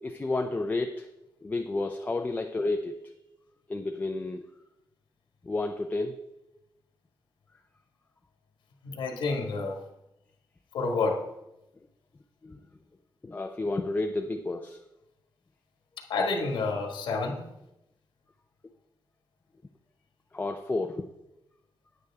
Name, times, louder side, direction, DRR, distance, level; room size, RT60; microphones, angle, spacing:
voice 1, 0.0-1.1 1.4-3.0 3.7-4.4 5.4-6.2 12.4-12.6 13.2-14.8 20.3-21.1, left 2 dB, 20° left, 5 dB, 0.5 m, -31 dB
voice 2, 8.8-9.8 10.7-11.2 16.1-17.4, left 3 dB, 85° left, 2 dB, 1.6 m, -29 dB
9.4 x 9.3 x 3.6 m, 0.89 s
wide cardioid pair, 135°, 8 cm